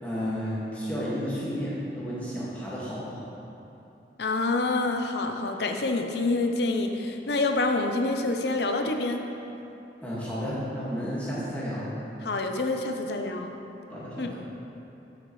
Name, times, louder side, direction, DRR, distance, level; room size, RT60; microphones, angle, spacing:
voice 1, 0.0-3.3 10.0-11.9 13.9-14.3, equal, 10° left, -9 dB, 1.8 m, -32 dB
voice 2, 4.2-9.2 12.2-13.5 14.2-14.3, left 2 dB, 65° left, 5 dB, 0.6 m, -27 dB
11.0 x 6.6 x 3.2 m, 2.9 s
head